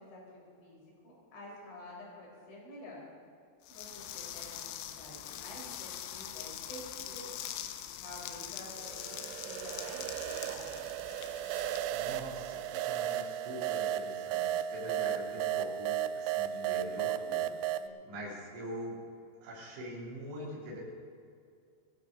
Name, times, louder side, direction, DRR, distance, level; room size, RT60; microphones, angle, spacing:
voice 1, 0.0-3.0 3.7-7.3 8.0-10.8 17.8-18.1, left 1 dB, 70° left, -4 dB, 7.1 m, -50 dB
sound 1, 3.6-12.6, left 11 dB, 85° left, 3.4 m, -43 dB
sound 2, 8.8-17.9, right 11 dB, 85° right, 2.8 m, -35 dB
voice 2, 11.9-17.5 18.1-19.0 19.4-20.8, equal, 60° right, -7 dB, 5.4 m, -43 dB
20.0 x 14.5 x 4.0 m, 2.3 s
omnidirectional pair, 5.7 m